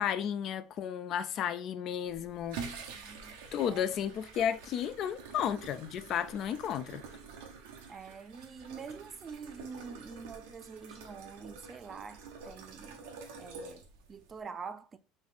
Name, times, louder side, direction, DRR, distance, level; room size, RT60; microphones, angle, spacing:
voice 1, 0.0-2.6 3.5-7.0, left 9 dB, 55° left, 0.3 m, -33 dB
sound 1, 2.1-14.4, right 5 dB, 80° right, 0.7 m, -48 dB
voice 2, 2.9-3.4 3.6-3.8 7.9-13.0 13.4-15.0, right 5 dB, 30° right, 0.4 m, -46 dB
3.9 x 2.5 x 3.4 m
supercardioid pair, 90°, 0 cm